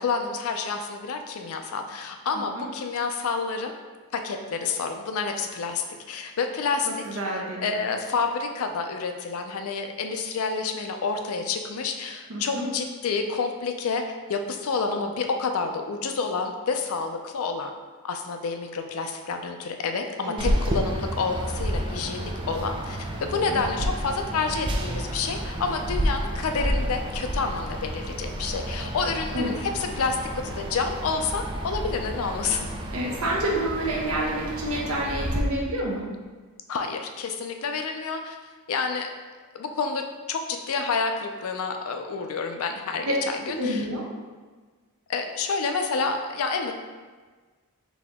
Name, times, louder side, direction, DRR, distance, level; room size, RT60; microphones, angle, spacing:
voice 1, 0.0-3.7 4.1-7.2 7.6-17.7 18.0-32.7 36.7-38.4 38.7-39.1 39.5-40.0 40.3-43.8 45.1-46.7, left 4 dB, 65° left, 5 dB, 0.4 m, -29 dB
voice 2, 6.9-7.7 12.3-12.7 20.2-20.6 23.5-23.6 29.3-29.5 32.9-36.1 43.0-43.1 43.4-44.0, right 1 dB, 70° right, -3 dB, 0.7 m, -29 dB
sound 1, 20.4-35.4, right 1 dB, 20° right, 0.3 m, -30 dB
4.1 x 2.8 x 3.4 m, 1.4 s
head